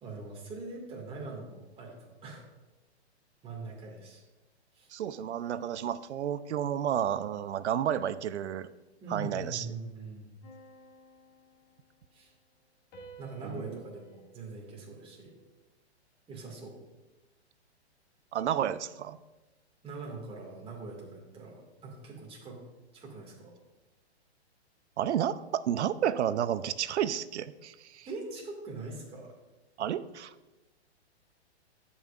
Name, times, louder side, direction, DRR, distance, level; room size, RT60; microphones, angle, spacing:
voice 1, 0.0-2.4 3.4-4.2 4.7-4.9 9.0-10.4 12.1-12.3 13.2-15.3 16.3-16.8 19.8-22.6 22.9-23.5 28.1-29.3, right 3 dB, 15° right, -1 dB, 1.9 m, -42 dB
voice 2, 4.9-8.7 9.1-9.7 13.4-13.8 18.3-19.2 25.0-28.1 29.8-30.3, right 10 dB, 80° right, 15 dB, 0.6 m, -31 dB
sound 1, 10.4-12.2 12.9-15.6, right 3 dB, 40° left, 2.1 m, -55 dB
16.0 x 5.5 x 2.4 m, 1.1 s
hypercardioid pair, 135°, 34 cm